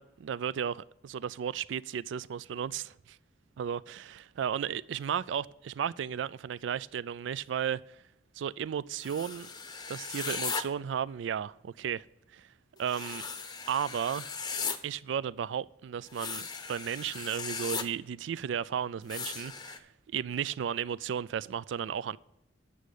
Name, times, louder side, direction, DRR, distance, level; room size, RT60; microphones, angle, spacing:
voice 1, 0.0-3.2 3.6-7.8 8.4-9.5 9.9-12.0 12.3-12.5 12.8-13.2 13.7-14.3 14.8-22.2, right 8 dB, 85° right, 0.3 m, -34 dB
sound 1, 9.0-10.6 12.9-14.8 16.1-17.8 19.1-19.8, left 5 dB, 20° left, 0.6 m, -37 dB
8.5 x 6.2 x 6.4 m
head